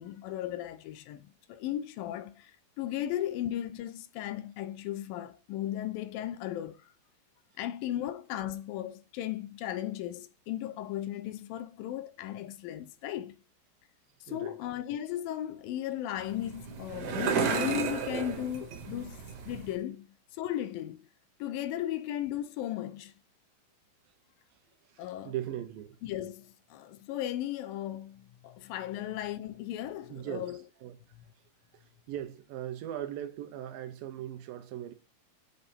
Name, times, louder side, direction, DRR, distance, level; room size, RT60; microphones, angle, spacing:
voice 1, 0.0-6.9 7.6-13.4 14.2-21.1 21.4-23.1 25.0-25.3 26.0-30.6, left 12 dB, 85° left, 2.3 m, -36 dB
sound 1, 16.2-19.8, right 5 dB, 60° right, 2.7 m, -33 dB
voice 2, 24.9-26.0 30.1-30.5 30.8-31.0 32.1-34.9, right 11 dB, 80° right, 2.6 m, -39 dB
7.9 x 4.0 x 5.4 m
omnidirectional pair, 4.2 m